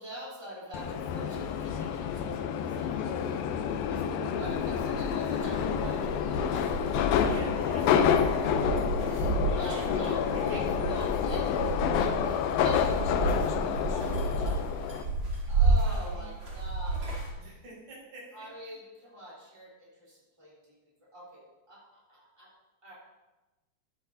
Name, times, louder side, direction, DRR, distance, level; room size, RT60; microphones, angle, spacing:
voice 1, 0.0-7.1 8.0-8.1 9.0-11.6 12.0-15.0 15.5-17.2 18.3-20.5 21.1-22.5 22.8-22.9, equal, 10° right, -6 dB, 3.4 m, -45 dB
Subway metro underground, 0.7-15.0, left 8 dB, 80° left, 2.4 m, -28 dB
sound 1, 4.4-17.3, right 3 dB, 35° right, 2.8 m, -32 dB
voice 2, 7.1-8.5 9.5-10.7 15.6-16.3 17.4-18.5, right 1 dB, 85° right, -8 dB, 6.1 m, -45 dB
13.0 x 12.0 x 2.7 m, 1.1 s
omnidirectional pair, 4.4 m